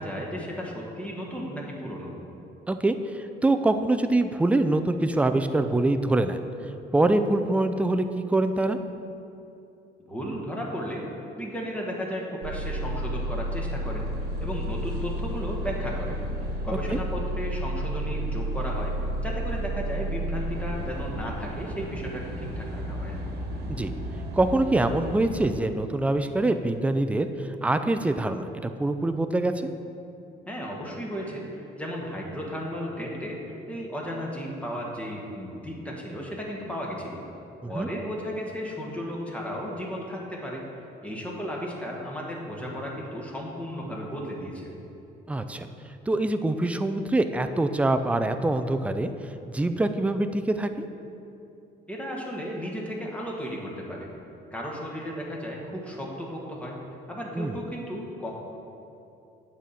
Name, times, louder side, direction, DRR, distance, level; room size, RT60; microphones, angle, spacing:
voice 1, 0.0-2.1 10.1-11.0 11.4-14.1 14.4-16.2 16.6-18.9 19.2-23.2 30.5-33.4 33.7-37.2 37.6-40.6 41.0-44.7 51.9-54.1 54.5-56.8 57.1-58.3, equal, 5° left, -2 dB, 1.5 m, -34 dB
voice 2, 2.7-6.4 6.9-8.8 16.9-17.0 23.7-23.9 24.3-29.7 37.6-37.9 45.3-45.7 46.1-50.8 57.3-57.6, right 2 dB, 10° right, 9 dB, 0.4 m, -24 dB
sound 1, 12.4-25.5, right 1 dB, 70° right, 1.3 m, -32 dB
8.8 x 4.2 x 6.9 m, 2.8 s
cardioid pair, 110°, 17 cm